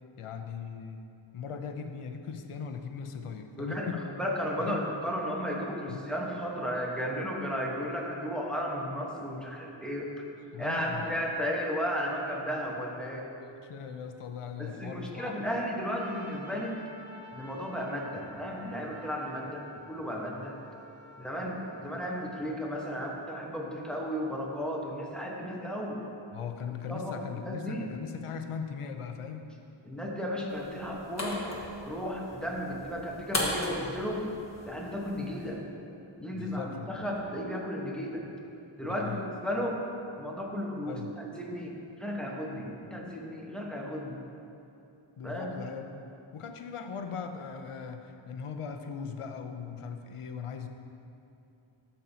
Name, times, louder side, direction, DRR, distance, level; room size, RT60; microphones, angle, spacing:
voice 1, 0.2-1.0 1.3-4.1 4.6-4.8 5.9-6.1 10.5-11.3 13.4-15.3 26.3-29.5 36.3-37.3 38.8-39.3 40.9-41.1 45.2-50.7, left 6 dB, 90° left, 6 dB, 0.6 m, -39 dB
voice 2, 3.6-10.2 10.6-13.3 14.6-16.8 17.3-20.6 21.2-26.0 26.9-27.8 29.8-31.4 31.8-34.2 34.7-35.6 36.2-38.2 38.8-39.8 40.2-44.2 45.2-45.5, equal, ahead, -2 dB, 1.1 m, -34 dB
Trumpet, 15.9-22.5, equal, 30° right, 0.9 m, -51 dB
sound 1, 30.5-35.5, left 1 dB, 30° left, 1.2 m, -37 dB
13.0 x 5.4 x 2.8 m, 2.7 s
wide cardioid pair, 65°, 50 cm